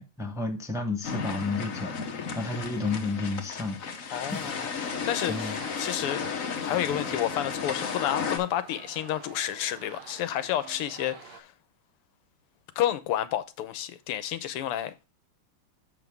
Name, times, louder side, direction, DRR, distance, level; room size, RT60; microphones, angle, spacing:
voice 1, 0.0-4.7 5.3-5.6, left 3 dB, ahead, 0.9 m, -32 dB
sound 1, 1.0-8.4, left 6 dB, 45° left, 1.2 m, -34 dB
voice 2, 4.1-6.3 6.6-11.5 12.8-14.9, left 12 dB, 90° left, 1.8 m, -30 dB
sound 2, 4.1-11.4, right 7 dB, 75° right, 2.2 m, -47 dB
7.5 x 6.0 x 3.5 m
omnidirectional pair, 2.4 m